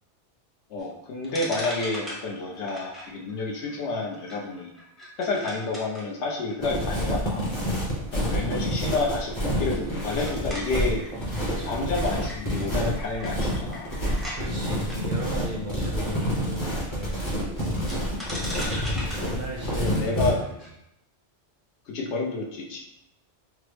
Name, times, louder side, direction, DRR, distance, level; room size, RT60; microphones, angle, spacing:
voice 1, 0.7-4.7 5.2-7.4 8.1-11.0 11.7-13.9 19.8-20.4 21.9-22.8, left 3 dB, 75° left, -1 dB, 0.9 m, -29 dB
sound 1, 0.8-0.9 1.2-14.4 14.8-15.0 17.9-20.7, equal, ahead, 0.4 m, -40 dB
sound 2, 6.6-20.3, equal, 30° left, 0.7 m, -28 dB
voice 2, 7.6-8.0 11.5-11.8 14.3-18.2 19.1-20.4, right 2 dB, 55° right, -2 dB, 0.6 m, -37 dB
3.4 x 2.0 x 3.2 m, 0.81 s
omnidirectional pair, 1.2 m